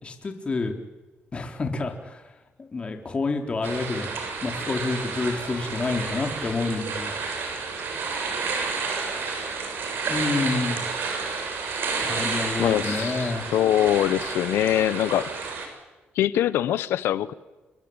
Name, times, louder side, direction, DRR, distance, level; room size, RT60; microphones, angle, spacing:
voice 1, 0.0-0.7 1.3-2.2 2.7-4.1 4.4-7.1 10.1-11.0 12.0-13.5, left 3 dB, 30° left, 4 dB, 4.0 m, -28 dB
sound 1, 3.6-15.7, right 4 dB, 70° right, 7.1 m, -30 dB
voice 2, 12.6-15.3 16.1-17.3, left 12 dB, 90° left, 16 dB, 1.2 m, -23 dB
29.0 x 22.0 x 8.9 m, 1.1 s
cardioid pair, 120°, 4 cm